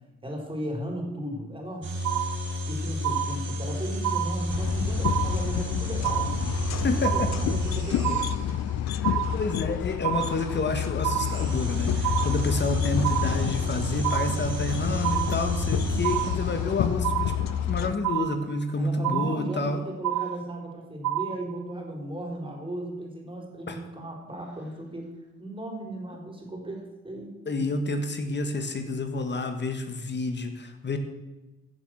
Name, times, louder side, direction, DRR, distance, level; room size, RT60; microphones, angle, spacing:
voice 1, 0.2-1.9 2.6-6.3 7.1-8.3 18.7-25.1 25.4-27.6, right 1 dB, 15° right, 1 dB, 4.1 m, -36 dB
sound 1, 1.8-8.7 11.1-16.9, right 1 dB, 40° right, 3.1 m, -32 dB
sound 2, 2.0-2.7 3.0-3.7 4.0-4.7 5.0-5.7 6.0-6.7 7.0-7.7 8.0-8.7 9.0-9.7 10.0-10.7 11.0-11.7 12.0-12.7 13.0-13.7 14.0-14.7 15.0-15.7 16.0-16.7 17.0-17.7 18.0-18.7 19.0-19.7 20.0-20.7 21.0-21.7, right 14 dB, 65° right, 0.6 m, -30 dB
sound 3, 4.5-17.9, left 10 dB, 65° left, 0.6 m, -29 dB
voice 2, 6.7-7.3 8.9-19.8 23.7-23.8 27.4-31.0, left 2 dB, 35° left, 7 dB, 1.6 m, -29 dB
15.5 x 7.3 x 6.4 m, 1.1 s
cardioid pair, 90°, 30 cm